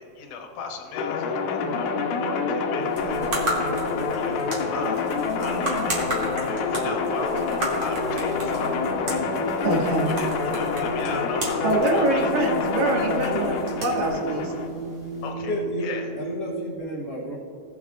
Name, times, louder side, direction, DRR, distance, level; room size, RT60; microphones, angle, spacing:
voice 1, 0.0-3.4 4.1-5.9 6.4-9.0 9.7-12.5 15.2-16.1, left 5 dB, 65° left, 2 dB, 2.1 m, -37 dB
sound 1, 0.9-14.7, left 5 dB, 85° left, 1.7 m, -27 dB
sound 2, 1.6-16.8, right 2 dB, 45° left, 2.6 m, -35 dB
sound 3, 2.8-15.3, right 1 dB, 35° right, 2.6 m, -35 dB
voice 2, 9.6-10.1 11.6-14.5, right 2 dB, 60° right, -2 dB, 3.3 m, -24 dB
voice 3, 15.5-15.9 16.2-17.4, equal, 80° right, -7 dB, 0.8 m, -31 dB
19.5 x 8.2 x 2.4 m, 2.6 s
omnidirectional pair, 4.7 m